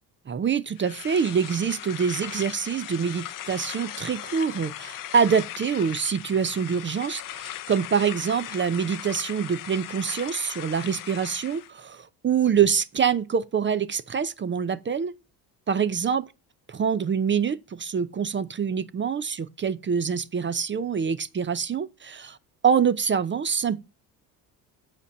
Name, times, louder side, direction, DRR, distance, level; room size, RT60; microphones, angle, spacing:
voice 1, 0.3-15.1 15.7-16.2 16.7-22.4 22.6-23.8, right 7 dB, 25° right, 0.5 m, -25 dB
sound 1, 0.8-11.7, left 13 dB, 40° left, 0.7 m, -38 dB
7.0 x 5.2 x 6.8 m
hypercardioid pair, 60°, 49 cm